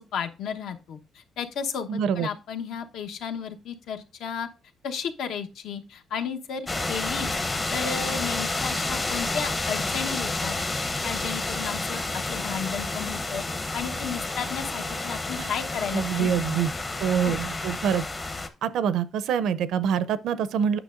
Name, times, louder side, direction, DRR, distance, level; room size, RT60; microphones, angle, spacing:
voice 1, 0.0-4.5 4.8-6.6 6.9-7.3 7.7-10.5 11.0-16.7 17.2-17.4, left 7 dB, 70° left, 1.0 m, -33 dB
voice 2, 1.9-2.3 15.4-15.5 15.9-16.7 17.0-18.0 18.6-20.8, right 8 dB, 70° right, 0.6 m, -25 dB
sound 1, 6.7-18.5, left 2 dB, 20° left, 0.7 m, -30 dB
9.0 x 6.3 x 2.5 m
cardioid pair, 155°, 0 cm